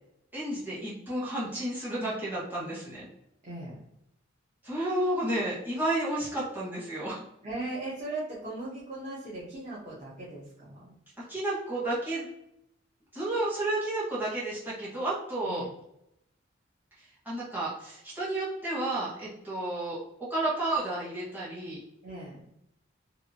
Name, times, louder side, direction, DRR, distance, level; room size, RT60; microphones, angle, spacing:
voice 1, 0.3-3.1 4.6-7.2 11.3-12.3 13.1-15.6 17.2-21.8, right 1 dB, 10° right, -8 dB, 1.1 m, -31 dB
voice 2, 3.4-3.8 7.4-11.0 15.4-15.7 22.0-22.5, right 2 dB, 40° right, -7 dB, 0.7 m, -38 dB
2.8 x 2.5 x 2.7 m, 0.80 s
head